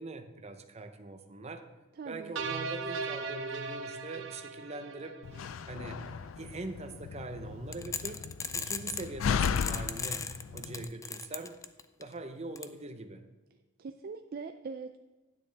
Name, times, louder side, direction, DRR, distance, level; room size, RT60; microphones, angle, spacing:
voice 1, 0.0-1.6 2.0-5.2 5.7-6.0 6.4-8.3 8.5-10.2 10.5-11.5 12.0-13.2, right 3 dB, 35° right, 7 dB, 0.7 m, -42 dB
voice 2, 1.9-2.3 13.8-15.0, right 4 dB, 50° right, 7 dB, 0.4 m, -41 dB
sound 1, 2.4-5.7, right 4 dB, 70° right, 0.8 m, -38 dB
Slam, 5.2-10.8, left 7 dB, 85° left, 0.4 m, -35 dB
sound 2, 7.7-9.1 9.5-12.0 12.6-12.7, left 5 dB, 15° left, 0.4 m, -36 dB
10.0 x 8.9 x 3.4 m, 1.2 s
head